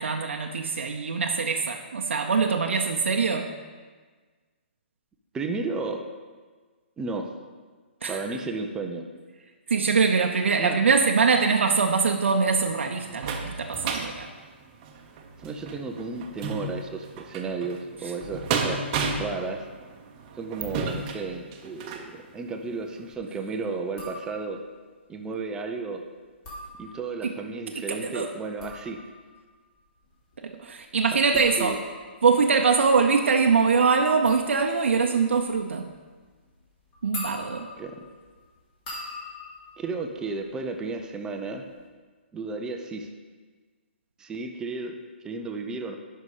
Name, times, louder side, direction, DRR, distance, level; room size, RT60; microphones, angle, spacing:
voice 1, 0.0-3.5 8.0-8.2 9.7-14.3 27.2-27.3 27.8-28.3 30.4-31.8 32.2-35.9 37.0-37.7, right 5 dB, 85° right, 3 dB, 0.7 m, -23 dB
voice 2, 5.3-6.0 7.0-7.3 8.1-9.0 10.6-10.8 15.4-18.8 19.2-19.6 20.4-24.6 25.1-26.0 26.8-29.0 31.3-31.8 37.8-38.0 39.8-41.7 42.3-43.1 44.2-44.9 45.2-45.9, right 3 dB, 10° right, 4 dB, 0.5 m, -33 dB
sound 1, 12.3-22.1 22.7-22.8 23.1-23.2, right 4 dB, 30° right, 0.9 m, -33 dB
sound 2, 23.9-24.7 26.2-27.3 28.3-41.0 41.3-41.9, left 2 dB, 30° left, 2.8 m, -44 dB
9.4 x 5.6 x 4.9 m, 1.4 s
hypercardioid pair, 150°, 6 cm